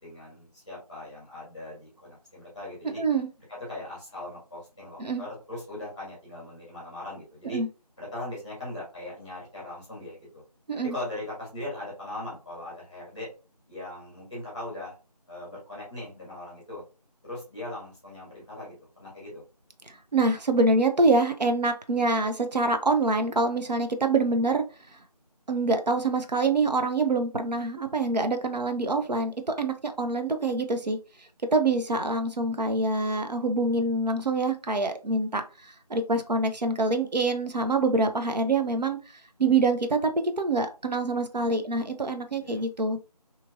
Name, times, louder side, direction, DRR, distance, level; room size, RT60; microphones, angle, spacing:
voice 1, 0.0-3.0 3.5-7.6 8.0-10.4 10.7-13.3 13.7-14.9 15.3-16.8 17.2-19.4 42.4-42.7, left 1 dB, 10° left, -7 dB, 1.1 m, -39 dB
voice 2, 3.0-3.3 5.0-5.2 7.4-7.7 10.7-11.0 19.9-24.6 25.5-31.0 31.5-35.4 35.9-39.0 39.4-40.1 40.4-43.0, right 3 dB, 85° right, 7 dB, 0.6 m, -25 dB
2.9 x 2.8 x 2.5 m, 0.33 s
figure-of-eight pair, 170°, 21 cm